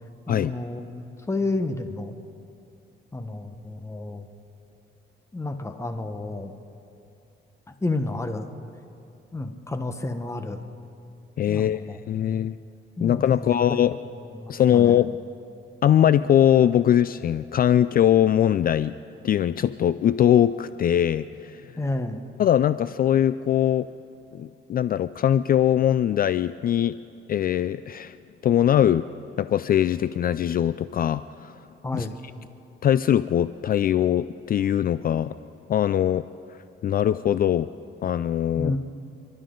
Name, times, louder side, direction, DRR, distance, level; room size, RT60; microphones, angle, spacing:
voice 1, 0.3-2.2 3.1-4.2 5.3-6.5 7.8-8.5 9.3-10.6 11.5-12.4 13.0-13.8 14.3-15.0 21.8-22.2 31.8-32.2 38.6-38.8, left 2 dB, 15° left, 7 dB, 1.2 m, -31 dB
voice 2, 11.4-12.5 13.0-14.0 14.5-15.1 15.8-18.9 19.2-21.6 22.4-23.9 24.3-26.9 27.3-28.2 28.4-29.1 29.4-31.5 31.9-32.1 32.8-35.4 35.7-36.3 36.8-37.7 38.0-38.7, left 10 dB, 45° left, 14 dB, 0.4 m, -21 dB
30.0 x 12.5 x 3.9 m, 2.5 s
cardioid pair, 90°, 20 cm